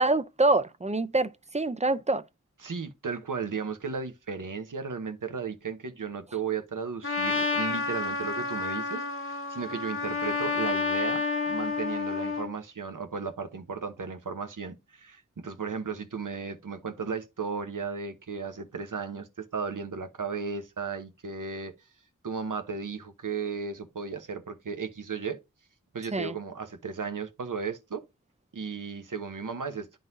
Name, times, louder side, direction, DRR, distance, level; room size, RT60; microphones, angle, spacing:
voice 1, 0.0-2.2 26.1-26.3, right 2 dB, 20° right, 0.5 m, -25 dB
voice 2, 2.6-21.7 22.2-25.4 25.9-28.0 28.5-29.9, right 5 dB, 85° right, 0.9 m, -35 dB
Trumpet, 7.0-12.5, left 4 dB, 45° left, 1.1 m, -30 dB
10.5 x 3.9 x 2.6 m
wide cardioid pair, 45°, 31 cm